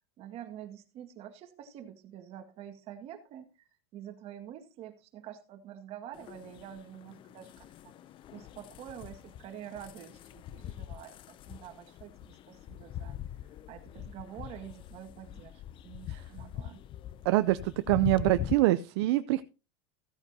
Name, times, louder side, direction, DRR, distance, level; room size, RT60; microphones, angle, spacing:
voice 1, 0.2-7.9 8.3-13.2 13.7-16.8, right 10 dB, 45° right, 6 dB, 2.0 m, -47 dB
sound 1, 6.1-18.5, left 11 dB, 35° left, 0.5 m, -43 dB
voice 2, 17.2-19.4, right 17 dB, 65° right, 12 dB, 0.6 m, -25 dB
15.5 x 9.0 x 2.8 m, 0.32 s
supercardioid pair, 120°, 14 cm